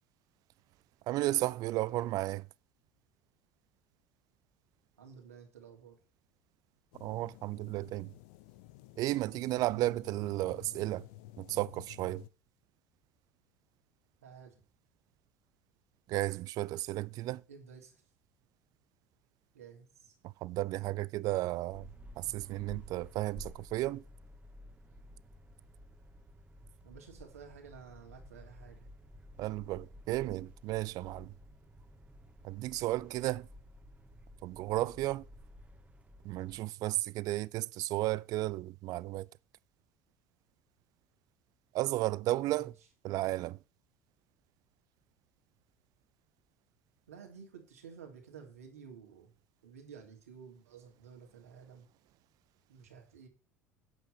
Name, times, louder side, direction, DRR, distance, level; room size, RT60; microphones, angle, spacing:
voice 1, 1.1-2.5 7.0-8.1 9.0-11.1 11.4-12.2 16.1-17.4 20.2-21.9 22.2-24.0 29.4-31.3 32.4-33.5 34.4-35.2 36.2-39.3 41.7-42.7 43.0-43.6, right 17 dB, 55° right, 0.5 m, -33 dB
voice 2, 5.0-6.0 14.2-14.5 17.5-18.0 19.5-20.1 26.8-28.9 42.5-42.7 47.1-49.3 49.6-51.9 52.7-53.3, right 6 dB, 80° right, 3.0 m, -52 dB
sound 1, 6.9-12.3, left 17 dB, 65° left, 0.7 m, -53 dB
sound 2, 21.7-36.6, equal, 20° right, 1.7 m, -53 dB
9.1 x 8.2 x 6.6 m
hypercardioid pair, 70°, 8 cm